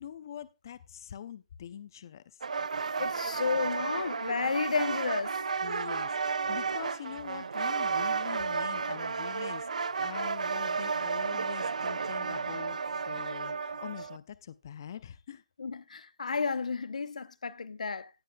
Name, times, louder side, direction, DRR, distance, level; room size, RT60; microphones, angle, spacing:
voice 1, 0.0-2.4 5.6-12.8 13.1-15.4, left 9 dB, 30° left, 0.5 m, -44 dB
sound 1, 2.4-14.2, right 5 dB, 85° right, 0.5 m, -32 dB
voice 2, 3.0-5.4 15.6-18.1, left 5 dB, 90° left, 0.8 m, -32 dB
16.5 x 7.4 x 2.3 m
hypercardioid pair, 175°, 4 cm